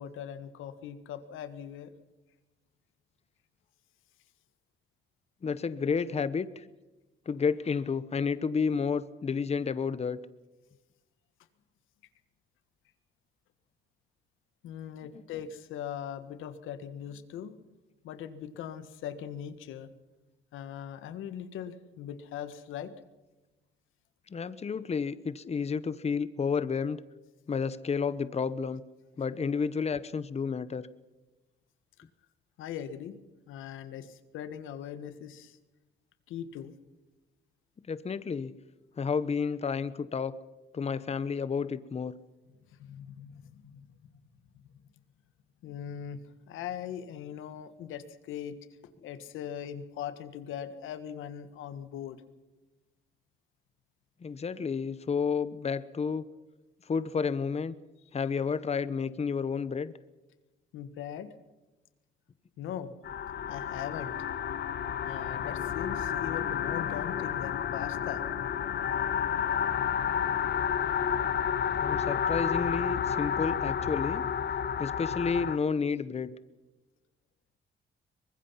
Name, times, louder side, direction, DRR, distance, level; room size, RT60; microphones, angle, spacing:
voice 1, 0.0-1.9 14.6-17.6 18.0-19.9 20.5-22.9 32.6-33.2 33.5-35.6 36.3-36.7 42.7-44.1 44.5-44.6 45.6-46.2 46.5-48.6 49.0-52.2 60.7-61.3 62.6-62.9 63.5-64.2 65.0-68.2, left 9 dB, 90° left, 11 dB, 1.6 m, -40 dB
voice 2, 5.4-6.6 7.3-10.2 24.3-27.0 27.5-28.8 29.2-30.9 37.9-38.5 39.0-40.3 40.7-42.1 54.2-56.2 56.9-57.7 58.1-59.9 71.8-74.3 74.8-76.3, left 5 dB, 30° left, 15 dB, 0.9 m, -31 dB
sound 1, 63.0-75.6, left 8 dB, 55° left, 1.1 m, -31 dB
24.0 x 20.5 x 5.8 m, 1.1 s
cardioid pair, 90°, 20 cm